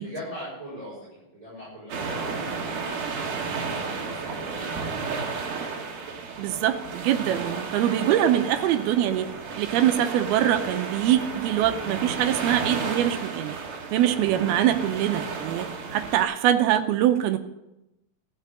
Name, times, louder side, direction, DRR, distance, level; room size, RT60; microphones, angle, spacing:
voice 1, 0.0-5.3, equal, 20° right, -9 dB, 7.0 m, -40 dB
sound 1, 1.9-16.2, right 5 dB, 60° right, 3.0 m, -33 dB
voice 2, 6.4-9.3 9.6-13.6 13.9-17.4, right 11 dB, 90° right, 7 dB, 2.7 m, -23 dB
14.5 x 6.7 x 9.6 m, 0.91 s
omnidirectional pair, 4.5 m